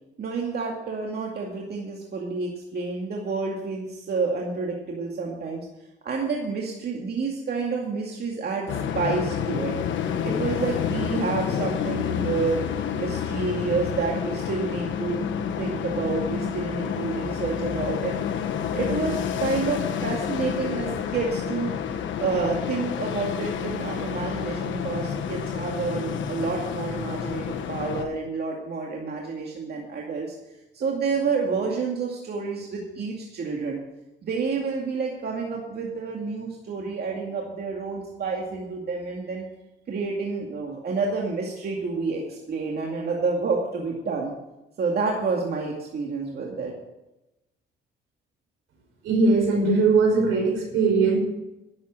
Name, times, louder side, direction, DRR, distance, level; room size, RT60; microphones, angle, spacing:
voice 1, 0.2-5.7 6.0-8.7 8.9-9.7 10.2-12.6 12.9-18.2 18.7-30.3 30.7-33.8 34.2-39.5 39.9-44.3 44.8-46.7, right 4 dB, 55° right, -1 dB, 2.3 m, -29 dB
sound 1, 8.7-28.1, left 8 dB, 70° left, 1.3 m, -29 dB
voice 2, 49.0-51.2, right 4 dB, 85° right, 1 dB, 5.3 m, -20 dB
11.5 x 8.0 x 7.5 m, 0.98 s
cardioid pair, 90°, 20 cm